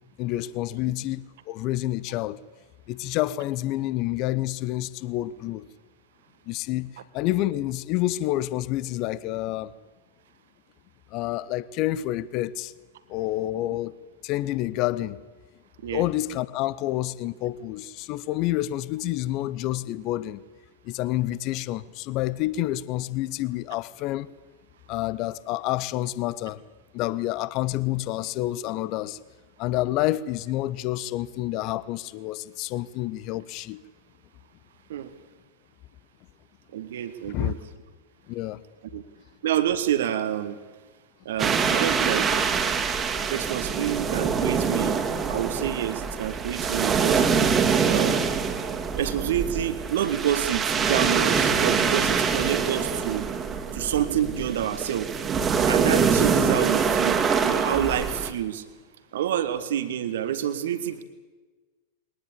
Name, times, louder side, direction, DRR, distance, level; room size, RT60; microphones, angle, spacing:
voice 1, 0.2-2.4 2.9-5.7 6.5-9.7 11.1-12.7 13.1-13.9 14.2-15.2 15.9-20.4 20.8-24.3 24.9-26.6 26.9-29.2 29.6-33.8 37.3-37.5 38.3-38.6, left 15 dB, 40° left, 0.8 m, -28 dB
voice 2, 36.7-37.6 38.9-39.0 39.4-40.6 41.2-42.3 43.3-45.0 45.3-47.2 47.8-48.2 48.9-53.3 53.7-55.1 55.7-58.6 59.1-61.0, right 10 dB, 60° right, 1.4 m, -28 dB
sound 1, 41.4-58.3, right 6 dB, 20° right, 2.2 m, -24 dB
22.0 x 19.5 x 8.6 m
figure-of-eight pair, 90°, 0 cm